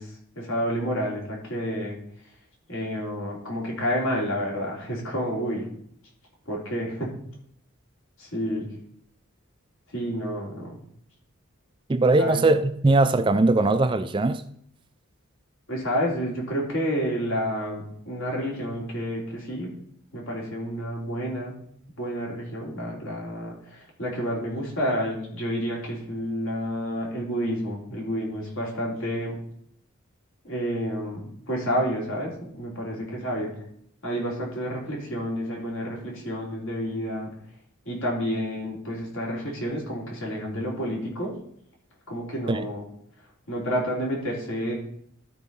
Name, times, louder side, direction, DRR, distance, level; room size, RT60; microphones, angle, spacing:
voice 1, 0.0-2.0 2.7-5.7 6.5-7.1 8.2-8.7 9.9-10.8 12.2-12.4 15.7-19.7 20.1-21.6 22.0-29.4 30.4-33.5 34.0-37.3 37.9-41.3 42.1-42.8 43.5-44.7, equal, 70° left, 3.5 m, -29 dB
voice 2, 11.9-14.5 42.5-42.6, right 2 dB, 25° right, 0.4 m, -20 dB
12.0 x 4.6 x 5.4 m
head